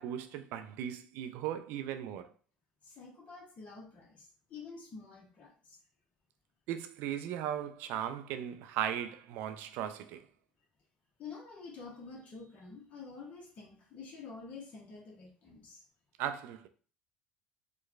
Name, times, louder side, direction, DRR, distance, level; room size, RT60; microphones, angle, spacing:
voice 1, 0.0-2.3 6.7-10.2 16.2-16.7, right 10 dB, 60° right, 0.4 m, -37 dB
voice 2, 2.8-5.8 11.2-15.8, left 4 dB, 40° left, 0.8 m, -48 dB
4.4 x 2.2 x 2.3 m
figure-of-eight pair, 60°, 4 cm